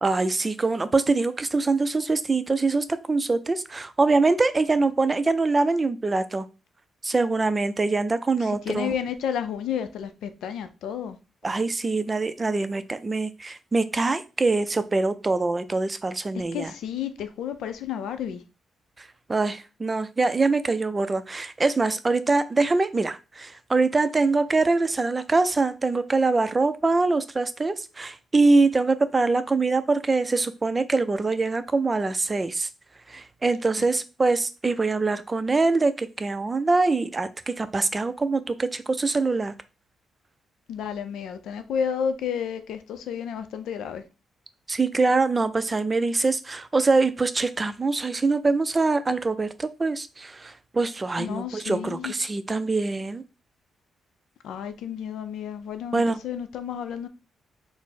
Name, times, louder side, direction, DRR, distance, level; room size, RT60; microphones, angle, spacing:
voice 1, 0.0-6.5 7.0-8.9 11.4-16.7 19.0-32.7 33.1-39.5 44.7-53.2 55.9-56.2, right 3 dB, 30° right, 0.4 m, -24 dB
voice 2, 8.4-11.2 16.3-18.4 33.8-33.9 40.7-44.0 51.2-52.1 54.4-57.1, left 8 dB, 80° left, 0.4 m, -31 dB
4.3 x 2.0 x 4.1 m
supercardioid pair, 55°, 0 cm